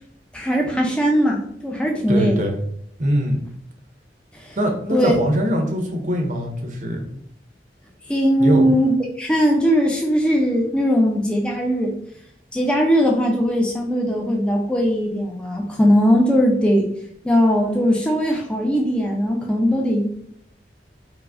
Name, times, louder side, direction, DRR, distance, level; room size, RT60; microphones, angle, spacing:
voice 1, 0.3-2.4 4.3-4.6 4.9-5.1 8.1-11.9 12.5-16.9 17.2-20.1, equal, 5° left, -1 dB, 0.3 m, -19 dB
voice 2, 2.1-2.6 3.0-3.4 4.6-7.1 8.4-8.8, equal, 45° right, 2 dB, 0.6 m, -22 dB
4.6 x 2.0 x 2.5 m, 0.68 s
head